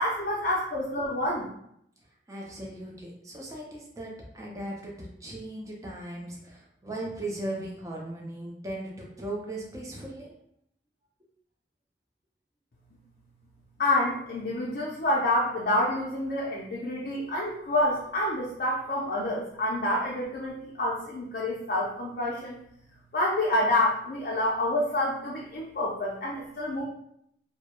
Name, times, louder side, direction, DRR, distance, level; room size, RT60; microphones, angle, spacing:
voice 1, 0.0-1.5 13.8-22.6 23.1-26.8, left 1 dB, 50° left, -5 dB, 0.4 m, -28 dB
voice 2, 2.3-10.3, right 1 dB, 20° right, -3 dB, 0.4 m, -38 dB
2.2 x 2.0 x 2.9 m, 0.73 s
head